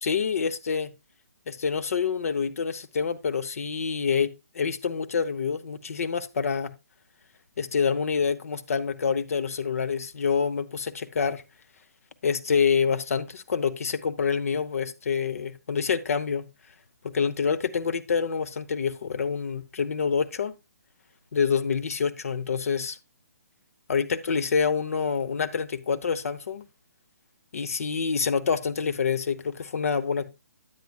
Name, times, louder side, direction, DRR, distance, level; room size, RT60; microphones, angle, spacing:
voice 1, 0.0-0.9 1.5-6.7 7.6-11.4 12.2-16.4 17.1-20.5 21.3-23.0 23.9-26.7 27.5-30.3, left 6 dB, 65° left, 0.8 m, -27 dB
9.4 x 9.1 x 2.3 m
hypercardioid pair, 160°, 9 cm